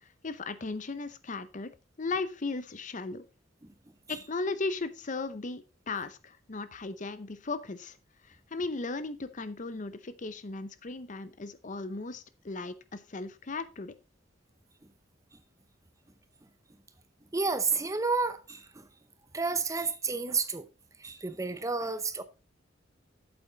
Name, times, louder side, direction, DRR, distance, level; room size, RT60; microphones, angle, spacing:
voice 1, 0.0-1.7 2.0-3.2 4.1-8.0 8.2-13.9, left 3 dB, 40° left, 0.7 m, -36 dB
voice 2, 17.3-18.9 19.3-20.7 21.0-22.2, right 4 dB, 15° right, 0.6 m, -31 dB
8.5 x 7.8 x 3.9 m
head